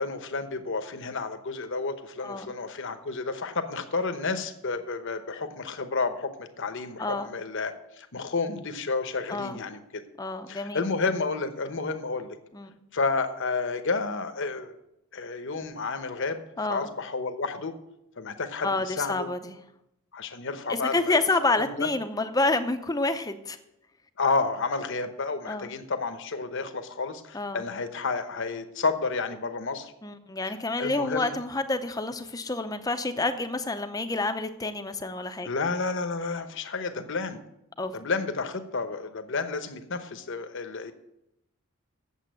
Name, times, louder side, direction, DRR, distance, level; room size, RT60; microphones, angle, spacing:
voice 1, 0.0-10.0 10.5-12.4 12.9-14.8 15.1-16.4 16.7-17.7 18.2-19.3 20.1-21.2 21.6-21.9 24.2-29.9 30.8-31.4 35.4-37.4 37.9-40.9, left 4 dB, 55° left, 8 dB, 0.9 m, -31 dB
voice 2, 7.0-7.3 9.3-9.6 10.2-10.8 12.5-12.8 16.6-16.9 18.6-19.6 20.7-23.6 25.5-25.7 27.3-27.6 30.0-35.5 37.8-37.9, left 2 dB, 15° left, 9 dB, 0.6 m, -28 dB
8.3 x 7.5 x 7.6 m, 0.86 s
head